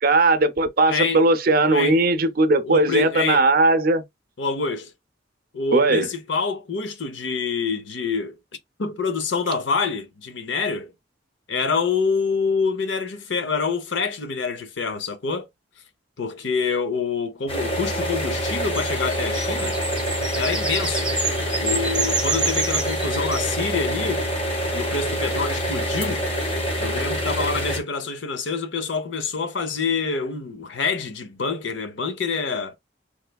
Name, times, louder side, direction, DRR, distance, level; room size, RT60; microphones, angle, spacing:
voice 1, 0.0-4.0 5.7-6.1, right 2 dB, 50° right, 0.6 m, -18 dB
voice 2, 0.9-1.2 1.7-2.0 2.6-3.4 4.4-4.9 5.5-8.4 8.8-10.9 11.5-15.5 16.2-19.8 20.3-21.1 21.6-24.3 24.7-26.2 26.8-32.7, left 4 dB, 70° left, 0.7 m, -26 dB
sound 1, 17.5-27.8, equal, 30° left, 0.9 m, -26 dB
sound 2, 18.5-23.5, right 4 dB, 5° right, 0.7 m, -28 dB
3.3 x 3.1 x 2.2 m
head